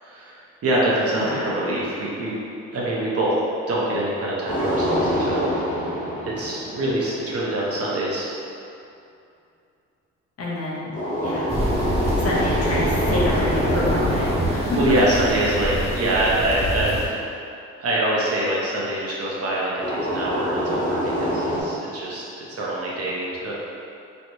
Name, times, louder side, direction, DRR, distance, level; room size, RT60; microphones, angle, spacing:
voice 1, 0.0-2.4 2.7-3.3 3.7-5.5 6.2-8.3 14.7-17.2 17.8-23.6, right 1 dB, 50° right, -5 dB, 0.9 m, -24 dB
voice 2, 1.1-1.6 10.4-10.9 11.2-11.5 12.2-14.8 15.1-15.2, left 1 dB, 55° left, -6 dB, 0.9 m, -28 dB
sound 1, 4.5-7.5 10.9-16.3 19.8-21.6, equal, 25° left, 0.7 m, -26 dB
sound 2, 11.5-17.0, right 1 dB, 20° right, 0.5 m, -26 dB
3.2 x 2.9 x 2.7 m, 2.6 s
cardioid pair, 90°, 30 cm